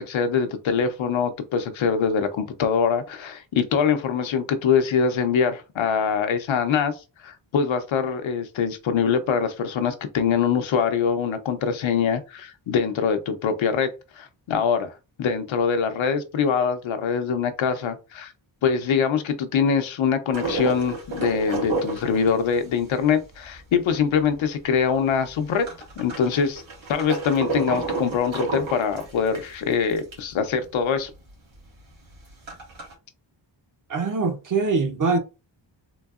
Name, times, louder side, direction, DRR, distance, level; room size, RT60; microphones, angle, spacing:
voice 1, 0.0-6.9 7.2-13.9 14.2-14.9 15.2-18.3 18.6-25.7 26.0-26.6 26.9-31.1, left 6 dB, 90° left, 0.7 m, -23 dB
sound 1, 20.3-24.3 24.7-24.8 25.0-30.3 30.7-30.8 31.0-31.1 31.7-32.9, right 3 dB, 85° right, 1.9 m, -31 dB
voice 2, 33.9-35.2, right 4 dB, 45° right, 0.7 m, -23 dB
3.8 x 2.7 x 2.4 m
wide cardioid pair, 145°, 45 cm